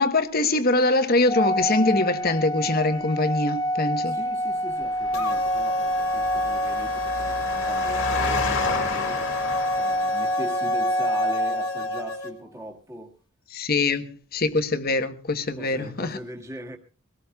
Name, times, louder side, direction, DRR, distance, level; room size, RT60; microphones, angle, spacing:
voice 1, 0.0-4.2 13.5-16.1, left 2 dB, 45° left, 1.1 m, -23 dB
Organ, 1.3-12.1, equal, 20° left, 1.1 m, -27 dB
voice 2, 4.0-9.2 9.7-13.2 15.5-16.8, equal, 15° right, 1.8 m, -40 dB
Engine, 4.8-10.4, left 3 dB, 60° left, 2.2 m, -31 dB
sound 1, 5.1-12.3, left 4 dB, 80° left, 2.1 m, -33 dB
23.0 x 17.5 x 2.3 m
head